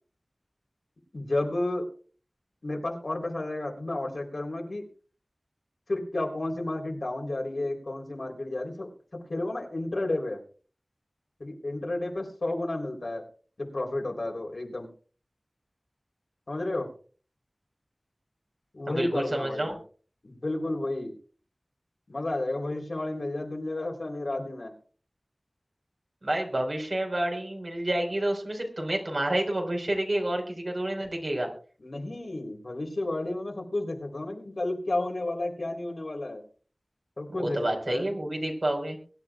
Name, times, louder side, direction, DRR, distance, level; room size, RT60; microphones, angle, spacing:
voice 1, 1.1-1.9 2.6-4.9 5.9-8.9 9.3-10.4 11.4-13.2 13.6-14.9 16.5-16.9 18.7-19.8 20.2-21.1 22.1-24.7 31.8-36.4 37.2-38.1, left 2 dB, 75° left, 0 dB, 3.7 m, -32 dB
voice 2, 18.9-19.7 26.2-31.5 37.3-39.0, right 1 dB, 55° right, 2 dB, 4.7 m, -29 dB
23.0 x 11.5 x 2.4 m, 0.41 s
wide cardioid pair, 60°, 0 cm